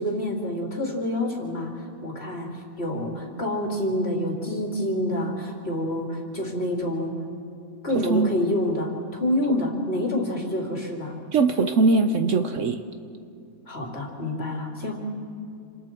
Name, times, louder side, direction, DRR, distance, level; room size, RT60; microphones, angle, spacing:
voice 1, 0.0-7.2 7.8-11.2 13.7-15.0, left 1 dB, 40° left, 0 dB, 3.1 m, -27 dB
voice 2, 7.9-8.3 11.3-12.8, right 3 dB, 60° right, 7 dB, 1.1 m, -21 dB
28.0 x 27.5 x 4.5 m, 2.4 s
omnidirectional pair, 1.6 m